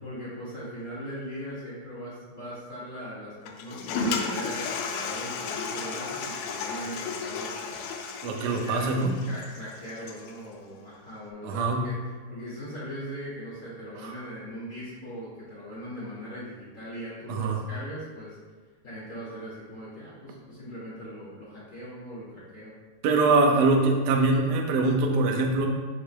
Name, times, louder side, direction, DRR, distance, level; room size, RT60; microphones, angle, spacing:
voice 1, 0.0-7.8 8.4-8.9 9.3-11.9 12.3-18.4 18.8-22.7, equal, 35° left, -8 dB, 1.2 m, -40 dB
Toilet flush, 3.5-10.4, left 4 dB, 85° left, 2.2 m, -33 dB
voice 2, 8.2-9.1 11.4-11.8 14.0-14.1 17.3-17.6 23.0-25.7, right 3 dB, 90° right, 0 dB, 1.8 m, -23 dB
14.0 x 5.2 x 2.2 m, 1.3 s
omnidirectional pair, 4.9 m